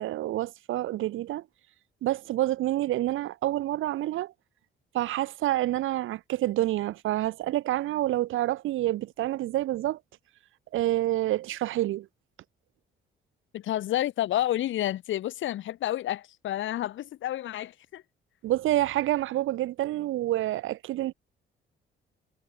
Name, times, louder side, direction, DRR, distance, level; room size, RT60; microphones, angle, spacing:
voice 1, 0.0-1.4 2.0-4.3 4.9-10.0 10.7-12.1 18.4-21.1, right 15 dB, 85° right, 2.3 m, -28 dB
voice 2, 13.5-18.0, left 13 dB, 80° left, 2.2 m, -30 dB
cardioid pair, 90°, 20 cm